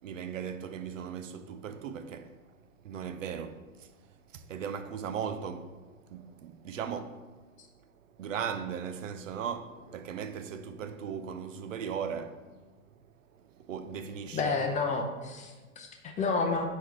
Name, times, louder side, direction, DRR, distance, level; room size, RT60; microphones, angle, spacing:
voice 1, 0.0-2.4 2.8-4.0 4.3-7.5 8.2-12.5 13.3-14.5, right 7 dB, 65° right, 0.6 m, -38 dB
voice 2, 14.3-16.7, left 4 dB, 20° left, 0.6 m, -30 dB
4.7 x 4.3 x 4.6 m
figure-of-eight pair, 90°, 41 cm